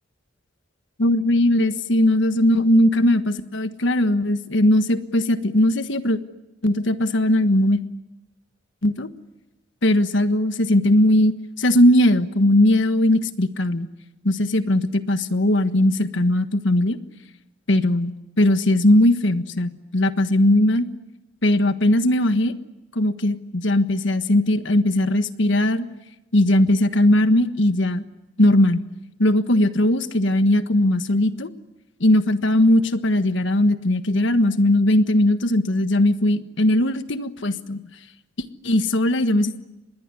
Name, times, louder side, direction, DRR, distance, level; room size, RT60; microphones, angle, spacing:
voice 1, 1.0-6.2 6.6-7.8 8.8-9.1 9.8-13.9 14.2-17.0 17.7-20.9 21.4-22.5 22.9-25.8 26.3-28.0 28.4-28.8 29.2-31.5 32.0-37.8 38.6-39.5, left 1 dB, 70° left, 10 dB, 1.4 m, -19 dB
26.0 x 21.0 x 9.9 m, 0.98 s
head